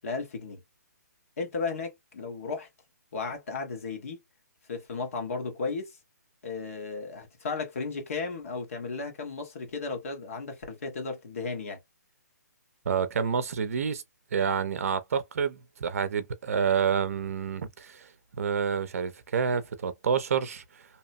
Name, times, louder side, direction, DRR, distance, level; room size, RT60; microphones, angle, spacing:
voice 1, 0.0-0.6 1.4-2.7 3.1-4.2 4.7-6.0 6.4-11.8, left 4 dB, 50° left, 1.4 m, -34 dB
voice 2, 12.9-14.0 14.3-18.1 18.4-20.9, right 6 dB, 55° right, 0.6 m, -28 dB
2.9 x 2.2 x 2.5 m
hypercardioid pair, 170°, 9 cm